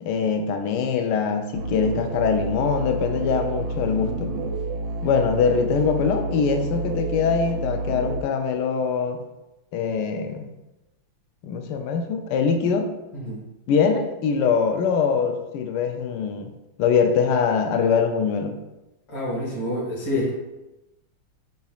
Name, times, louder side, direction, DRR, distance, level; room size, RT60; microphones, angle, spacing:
voice 1, 0.0-4.3 5.0-9.2 9.7-10.5 11.4-12.9 13.7-16.5 16.8-18.6, left 6 dB, 75° left, 6 dB, 1.0 m, -23 dB
sound 1, 1.5-8.2, right 3 dB, 80° right, 1.4 m, -29 dB
voice 2, 19.1-20.3, left 1 dB, 20° left, -5 dB, 0.8 m, -27 dB
5.5 x 3.9 x 2.4 m, 0.98 s
omnidirectional pair, 2.3 m